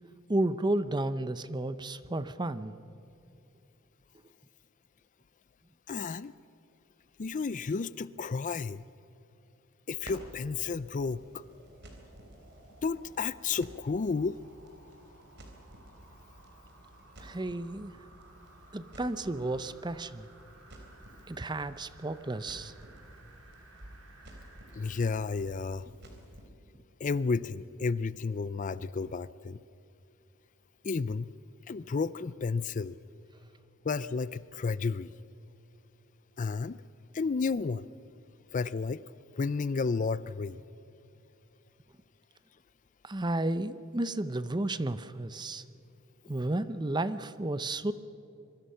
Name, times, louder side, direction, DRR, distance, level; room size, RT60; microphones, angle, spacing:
voice 1, 0.3-2.7 17.2-18.0 18.7-20.3 21.3-22.7 43.0-45.6 46.3-47.9, right 2 dB, 20° right, 13 dB, 0.7 m, -32 dB
voice 2, 5.9-6.3 7.2-8.8 9.9-11.4 12.8-14.4 24.7-25.9 27.0-29.6 30.8-31.3 31.7-33.0 33.8-35.1 36.4-36.8 37.1-37.9 38.5-39.0 39.4-40.6, left 4 dB, 40° left, 17 dB, 0.4 m, -32 dB
Crackle, 10.0-26.4, right 1 dB, 55° right, 3.7 m, -53 dB
sound 1, 10.3-25.2 25.7-25.8, right 2 dB, 80° right, 3.9 m, -58 dB
25.5 x 23.0 x 5.7 m, 2.8 s
head